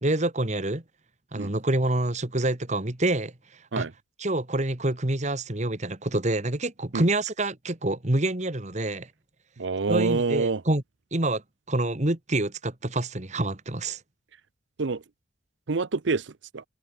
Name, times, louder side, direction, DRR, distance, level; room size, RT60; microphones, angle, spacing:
voice 1, 0.0-0.8 1.3-3.3 3.8-3.9 4.2-9.1 9.9-10.8 11.1-11.4 11.7-14.0, right 1 dB, 40° right, 1.9 m, -27 dB
voice 2, 9.6-10.6 14.8-15.0 15.7-16.6, right 4 dB, 90° right, 0.7 m, -27 dB
open air
head